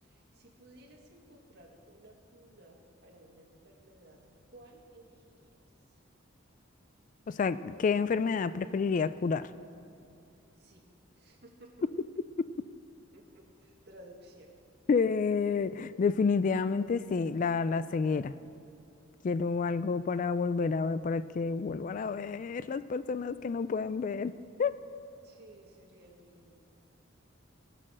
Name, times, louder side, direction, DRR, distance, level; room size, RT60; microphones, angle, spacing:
voice 1, 0.0-5.5 10.6-10.9 11.2-11.7 13.1-14.5 19.6-19.8 25.2-26.6, right 1 dB, 55° right, 0 dB, 1.9 m, -56 dB
voice 2, 7.3-9.5 12.4-12.5 14.9-18.3 19.2-24.3 24.6-24.8, left 5 dB, 40° left, 15 dB, 0.3 m, -29 dB
19.0 x 6.6 x 6.3 m, 2.6 s
head